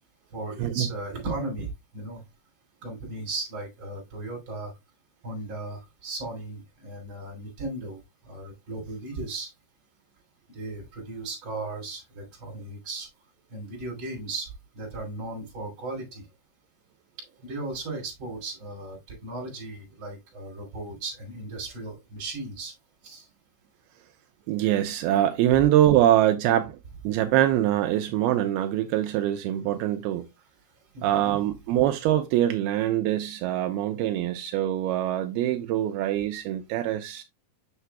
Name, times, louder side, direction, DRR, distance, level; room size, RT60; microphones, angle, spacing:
voice 1, 0.3-2.2 2.8-4.7 5.2-9.5 10.5-13.1 13.5-16.2 17.4-22.7 23.0-23.3 30.9-31.4, right 2 dB, 30° right, 3.4 m, -36 dB
voice 2, 24.5-26.8 27.0-30.2 31.0-37.2, right 12 dB, 85° right, 2.2 m, -24 dB
8.1 x 6.6 x 2.3 m
omnidirectional pair, 5.1 m